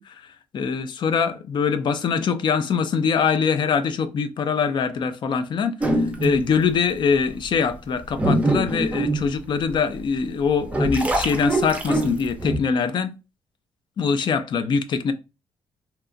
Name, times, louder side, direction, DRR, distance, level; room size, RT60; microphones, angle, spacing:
voice 1, 0.0-13.1 14.0-15.1, left 6 dB, 55° left, 0.4 m, -23 dB
sound 1, 5.8-6.5 7.1-7.2 7.9-10.0 10.5-12.6, right 1 dB, 15° right, 0.5 m, -23 dB
2.9 x 2.3 x 2.5 m
cardioid pair, 75°, 9 cm